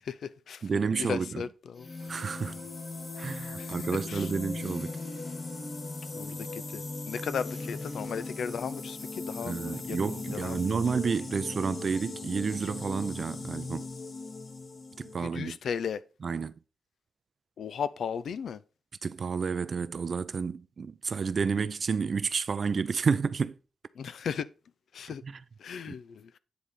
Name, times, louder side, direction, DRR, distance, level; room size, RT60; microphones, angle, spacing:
voice 1, 0.0-1.9 3.6-4.3 6.1-10.8 15.2-16.0 17.6-18.6 23.9-24.5 24.9-25.2 25.6-26.4, left 7 dB, 85° left, 0.5 m, -36 dB
voice 2, 0.6-1.4 2.1-2.6 3.2-5.0 9.4-13.9 15.0-15.6 16.2-16.5 19.0-23.6 25.2-25.4 25.9-26.0, right 5 dB, 55° right, 0.5 m, -30 dB
sound 1, 1.7-15.2, left 3 dB, 50° left, 1.4 m, -38 dB
9.4 x 4.1 x 4.9 m
cardioid pair, 90°, 0 cm